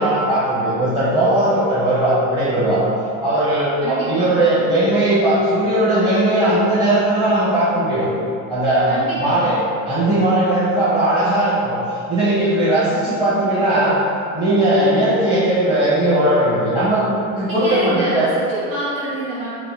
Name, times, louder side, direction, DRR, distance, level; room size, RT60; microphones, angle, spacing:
voice 1, 0.0-2.8 3.2-8.1 8.5-8.9 9.2-9.6 9.9-14.0 14.3-17.0 17.4-18.3, right 1 dB, 10° right, -12 dB, 0.8 m, -18 dB
voice 2, 3.8-4.5 8.9-9.6 17.4-19.5, right 1 dB, 80° right, -11 dB, 1.1 m, -27 dB
3.1 x 2.2 x 3.0 m, 2.5 s
figure-of-eight pair, 70°, 42 cm